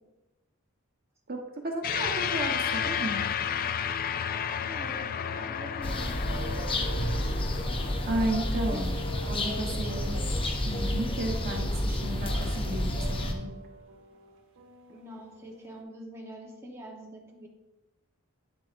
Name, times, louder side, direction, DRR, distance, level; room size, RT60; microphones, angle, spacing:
voice 1, 1.6-3.2 8.1-9.0 9.3-10.2 10.6-13.0 13.2-13.5, right 1 dB, 45° right, 1 dB, 1.0 m, -33 dB
sound 1, 1.8-10.5, left 8 dB, 40° left, 0.4 m, -33 dB
voice 2, 4.6-7.0 8.4-8.8 14.9-17.5, equal, 10° right, -2 dB, 1.0 m, -45 dB
sound 2, 4.7-15.8, right 2 dB, 65° right, 1.1 m, -48 dB
sound 3, 5.8-13.3, left 1 dB, 25° left, 0.8 m, -30 dB
8.9 x 7.5 x 2.5 m, 1.0 s
head